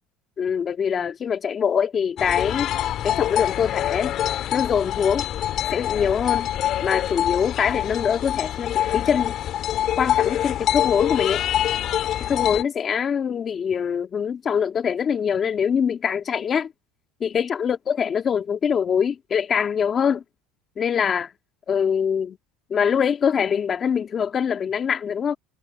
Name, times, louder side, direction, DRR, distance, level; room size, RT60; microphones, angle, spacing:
voice 1, 0.4-2.7 3.0-4.2 4.5-5.3 5.7-6.5 6.8-9.4 10.0-11.4 12.3-16.7 17.2-20.2 20.8-21.3 21.7-22.4 22.7-25.4, left 7 dB, 30° left, 1.9 m, -23 dB
sound 1, 2.2-12.6, left 11 dB, 50° left, 1.8 m, -25 dB
supercardioid pair, 120°, 0 cm